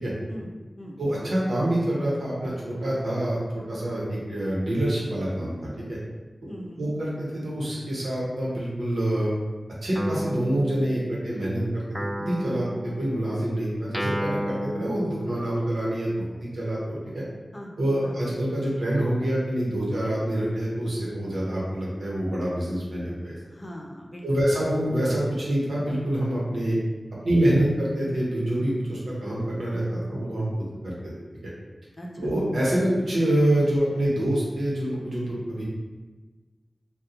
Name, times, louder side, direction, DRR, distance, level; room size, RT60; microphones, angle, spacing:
voice 1, 0.3-1.0 6.5-6.9 17.5-17.7 18.0-18.2 23.5-24.4 32.0-32.3, equal, 35° left, -1 dB, 0.6 m, -40 dB
voice 2, 1.0-5.5 5.9-6.0 6.4-6.5 6.8-9.3 9.8-11.8 12.2-12.7 13.0-17.2 17.8-23.4 24.2-26.8 27.2-30.5 30.8-30.9 32.2-35.6, right 1 dB, 90° right, -6 dB, 1.0 m, -26 dB
Guitar, 9.9-11.5 11.9-15.8, equal, ahead, 0.4 m, -33 dB
2.8 x 2.3 x 3.7 m, 1.3 s
cardioid pair, 40°, 0 cm